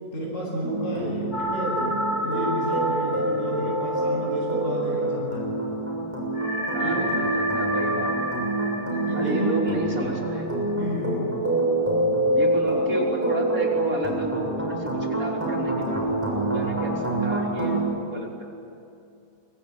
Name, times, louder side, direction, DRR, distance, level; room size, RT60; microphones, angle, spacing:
voice 1, 0.1-5.5 6.8-7.1 8.8-9.5 10.8-11.2 12.6-12.7, equal, 55° left, -2 dB, 8.5 m, -31 dB
sound 1, 0.6-17.8, right 1 dB, 10° right, 6.6 m, -26 dB
sound 2, 1.3-5.3 5.6-5.7 6.3-11.0, equal, 85° left, 5.9 m, -30 dB
voice 2, 6.7-8.3 9.1-10.5 12.3-18.4, right 2 dB, 70° right, -1 dB, 4.4 m, -32 dB
25.0 x 23.5 x 9.7 m, 2.6 s
omnidirectional pair, 1.5 m